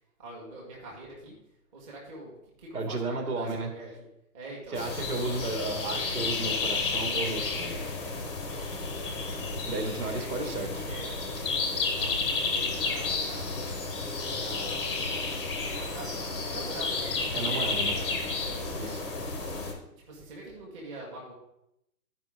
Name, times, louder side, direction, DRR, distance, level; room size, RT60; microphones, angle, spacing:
voice 1, 0.2-1.4 1.7-4.1 4.3-4.8 9.0-9.3 10.1-11.2 11.4-13.6 14.3-14.9 15.7-18.1 18.8-19.1 20.1-21.3, right 2 dB, 20° right, -4 dB, 1.6 m, -44 dB
voice 2, 2.7-3.7 4.7-7.9 9.7-10.7 17.3-18.0 18.8-19.0, right 2 dB, 65° right, 4 dB, 2.2 m, -33 dB
sound 1, 4.8-19.7, left 4 dB, 15° left, 0.9 m, -31 dB
13.5 x 5.3 x 3.7 m, 0.82 s
hypercardioid pair, 170°, 48 cm